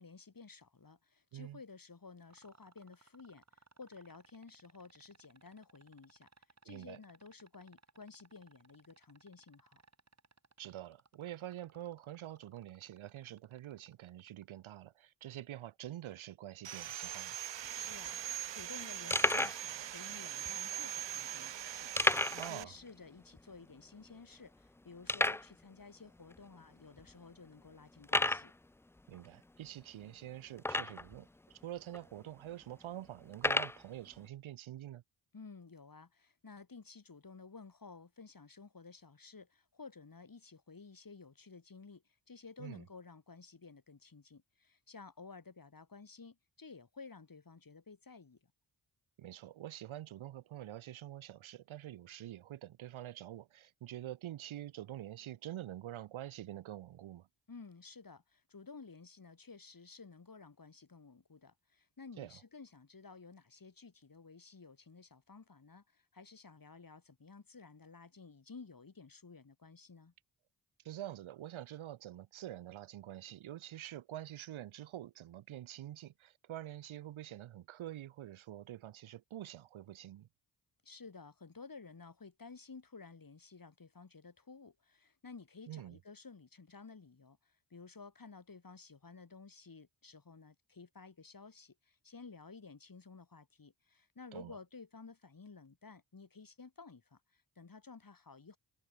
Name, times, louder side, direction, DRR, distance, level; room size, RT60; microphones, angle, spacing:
voice 1, 0.0-6.3 6.6-9.8 17.7-28.5 35.3-48.5 57.5-70.1 80.8-98.6, left 4 dB, 45° left, 7.3 m, -54 dB
sound 1, 2.3-14.4 16.1-16.2, right 4 dB, 35° right, 2.4 m, -64 dB
voice 2, 6.6-7.0 10.6-17.4 22.4-22.7 29.1-35.0 42.6-42.8 49.2-57.3 62.2-62.4 70.8-80.3 85.7-86.0 94.3-94.6, right 12 dB, 80° right, 1.2 m, -46 dB
Sawing, 16.6-22.6, right 11 dB, 65° right, 0.9 m, -42 dB
sound 2, 17.6-17.7 17.9-18.1 18.6-18.7 19.1-19.6 20.4-20.5 22.0-22.5 22.8-22.9 23.4-23.5 24.1-24.2 25.1-25.5 26.3-26.4 27.0-27.1 28.0-28.5 30.6-31.2 31.9-32.0 33.3-33.8, left 2 dB, 5° left, 0.3 m, -31 dB
supercardioid pair, 45°, 48 cm